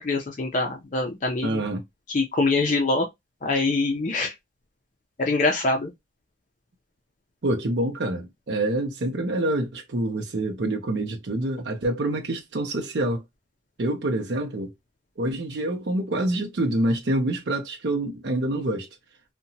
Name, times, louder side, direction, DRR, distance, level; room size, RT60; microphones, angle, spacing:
voice 1, 0.0-1.6 2.1-3.1 3.4-4.3 5.2-5.9, left 3 dB, 40° left, 0.5 m, -24 dB
voice 2, 1.4-1.8 7.4-13.2 13.8-14.7 15.2-18.9, right 1 dB, 70° right, 0.6 m, -26 dB
2.8 x 2.2 x 2.6 m
head